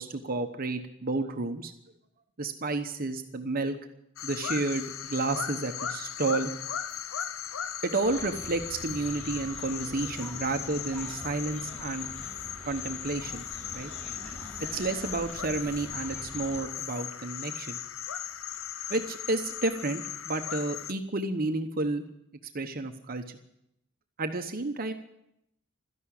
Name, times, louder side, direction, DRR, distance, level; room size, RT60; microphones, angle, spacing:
voice 1, 0.0-1.7 2.4-3.8 4.2-6.5 7.8-12.1 12.7-13.4 13.7-13.9 14.7-17.8 18.9-22.0 22.5-23.2 24.2-24.9, right 2 dB, 45° right, 6 dB, 1.0 m, -31 dB
sound 1, 4.2-20.9, left 9 dB, 90° left, 0.8 m, -38 dB
sound 2, 8.0-16.6, equal, 5° left, 5.5 m, -45 dB
13.5 x 11.0 x 9.9 m, 0.80 s
head